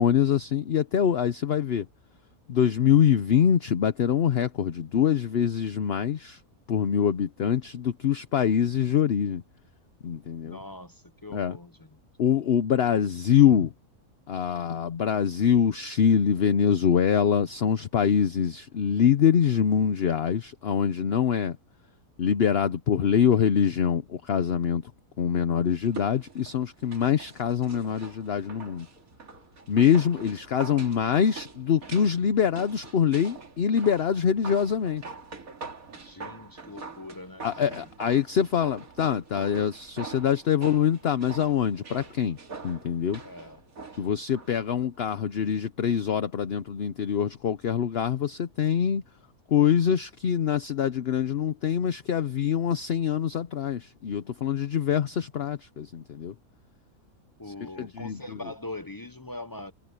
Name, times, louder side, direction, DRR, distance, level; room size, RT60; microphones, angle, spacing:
voice 1, 0.0-1.9 2.5-6.4 6.7-9.4 10.0-10.6 11.3-11.6 12.2-13.7 14.3-21.6 22.2-24.8 25.2-28.9 29.7-35.1 37.4-42.4 42.6-43.2 44.0-49.0 49.5-56.3 57.5-58.4, left 8 dB, 50° left, 0.8 m, -24 dB
voice 2, 10.4-12.0 35.9-37.9 43.2-43.6 57.4-59.7, left 2 dB, 30° left, 0.3 m, -42 dB
sound 1, 25.8-44.6 44.9-45.0, right 4 dB, 65° right, 2.7 m, -44 dB
omnidirectional pair, 1.6 m